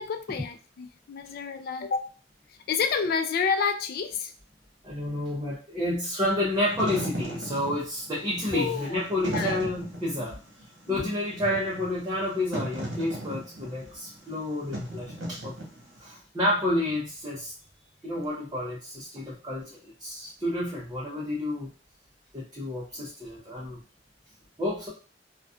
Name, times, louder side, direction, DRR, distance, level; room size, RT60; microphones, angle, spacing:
voice 1, 0.0-2.2 2.5-4.3 8.5-9.0 9.3-9.6 10.9-11.1, left 5 dB, 55° left, 8 dB, 0.3 m, -29 dB
voice 2, 4.8-10.4 10.9-15.6 16.0-17.5 18.0-21.7 22.3-23.8 24.6-24.9, left 1 dB, 20° right, -6 dB, 0.6 m, -30 dB
Wind / Fire, 6.5-16.1, right 1 dB, 90° right, 1.1 m, -37 dB
2.4 x 2.2 x 2.4 m, 0.35 s
head